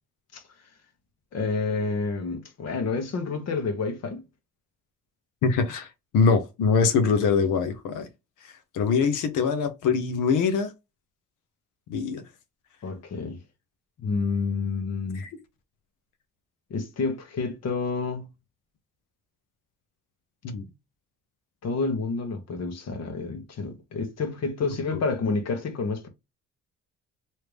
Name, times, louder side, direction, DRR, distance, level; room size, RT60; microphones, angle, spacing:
voice 1, 1.3-4.2 12.8-13.4 14.0-15.3 16.7-18.3 21.6-26.1, left 4 dB, 60° left, 1.2 m, -29 dB
voice 2, 5.4-5.9 6.1-8.1 8.4-10.7 11.9-12.2 15.1-15.3 20.4-20.7 24.9-25.0, left 5 dB, 85° left, 0.8 m, -23 dB
3.2 x 2.8 x 3.2 m
cardioid pair, 90°, 30 cm